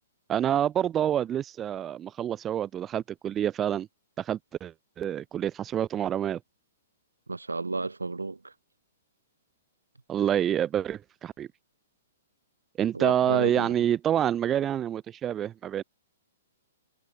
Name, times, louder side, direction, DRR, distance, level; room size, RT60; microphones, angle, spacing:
voice 1, 0.3-3.9 4.2-6.4 10.1-11.5 12.8-15.8, right 10 dB, 20° right, 1.0 m, -27 dB
voice 2, 7.3-8.5 12.9-13.8, right 3 dB, 80° right, 5.1 m, -32 dB
figure-of-eight pair, 115°, 0 cm